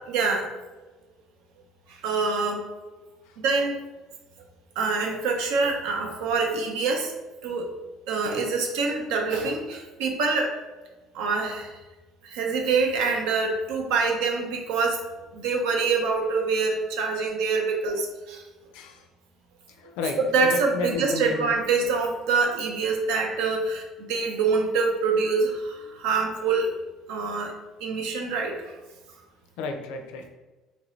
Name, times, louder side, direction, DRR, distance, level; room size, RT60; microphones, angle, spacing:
voice 1, 0.1-0.5 1.9-2.6 3.4-3.8 4.8-7.1 7.4-7.7 8.1-10.5 11.1-11.7 12.2-15.0 15.3-18.4 20.2-26.7 27.1-27.5 27.8-28.6, right 4 dB, 90° right, 2 dB, 0.6 m, -25 dB
voice 2, 18.7-19.0 19.7-21.5 29.6-30.3, left 3 dB, 85° left, 5 dB, 0.4 m, -32 dB
2.9 x 2.6 x 3.1 m, 1.2 s
cardioid pair, 155°, 0 cm